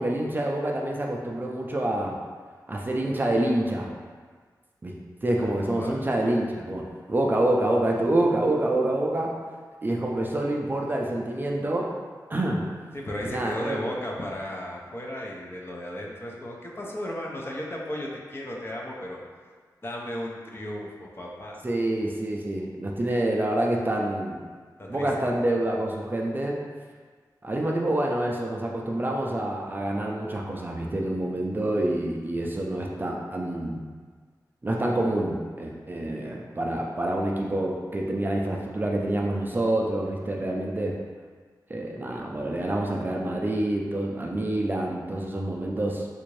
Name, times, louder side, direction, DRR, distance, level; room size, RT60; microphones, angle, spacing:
voice 1, 0.0-2.2 2.7-3.9 4.8-4.9 5.2-9.3 9.8-11.9 12.3-12.7 13.2-13.9 21.6-24.4 24.9-26.6 27.4-33.8 34.6-40.9 41.7-46.1, right 1 dB, 25° right, -1 dB, 0.4 m, -27 dB
voice 2, 5.4-6.0 12.9-19.2 19.8-21.6 24.8-25.3, left 1 dB, 35° left, -2 dB, 0.5 m, -35 dB
3.5 x 2.5 x 3.1 m, 1.5 s
wide cardioid pair, 95°, 7 cm